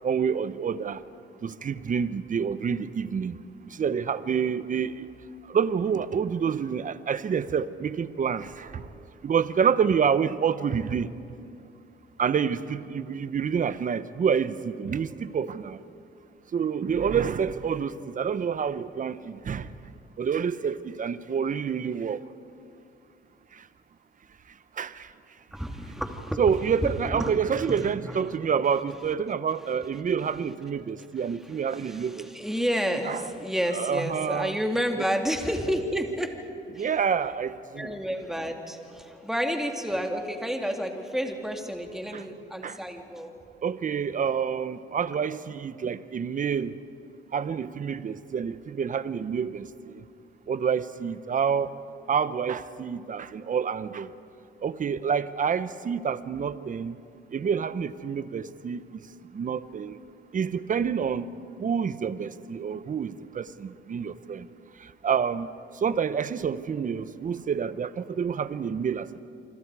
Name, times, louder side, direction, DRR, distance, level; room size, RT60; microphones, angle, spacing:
voice 1, 0.0-1.0 1.4-3.4 3.7-5.1 5.5-8.9 9.2-11.1 12.2-15.8 16.5-19.7 20.2-22.2 24.8-25.1 26.4-32.3 33.0-33.3 33.7-34.5 36.7-38.0 42.1-42.2 42.6-42.8 43.6-46.8 47.3-50.0 50.5-51.7 52.1-54.1 54.6-57.0 57.3-58.8 59.3-60.0 60.3-61.3 61.6-64.5 65.0-65.5 65.8-69.2, right 7 dB, 40° right, 0.9 m, -28 dB
voice 2, 25.5-26.4 26.8-28.2 31.5-36.3 36.7-36.9 37.7-43.4, equal, ahead, 2.5 m, -30 dB
27.5 x 25.0 x 4.8 m
cardioid pair, 90°, 20 cm